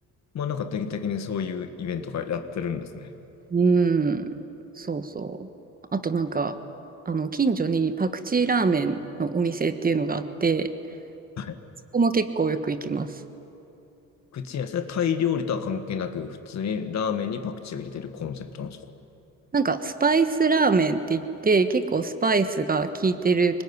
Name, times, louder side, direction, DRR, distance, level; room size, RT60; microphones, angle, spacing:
voice 1, 0.3-3.1 11.4-11.6 14.3-18.8, left 7 dB, 65° left, 8 dB, 1.7 m, -29 dB
voice 2, 3.5-4.3 4.8-5.5 5.9-6.6 7.0-10.7 11.9-13.1 19.5-23.6, right 4 dB, 30° right, 10 dB, 1.3 m, -23 dB
21.5 x 19.5 x 9.8 m, 3.0 s
cardioid pair, 90°, 30 cm